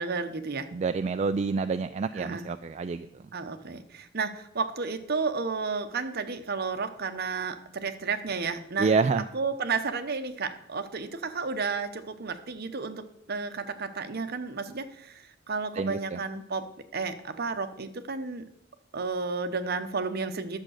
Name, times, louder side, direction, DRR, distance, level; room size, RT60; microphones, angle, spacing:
voice 1, 0.0-0.7 2.1-2.5 3.3-9.0 9.3-18.4 18.9-20.6, right 4 dB, 55° right, 9 dB, 0.9 m, -32 dB
voice 2, 0.7-3.1 8.8-9.2 15.8-16.2, right 4 dB, 35° right, 9 dB, 0.3 m, -27 dB
10.5 x 7.4 x 6.4 m, 0.78 s
head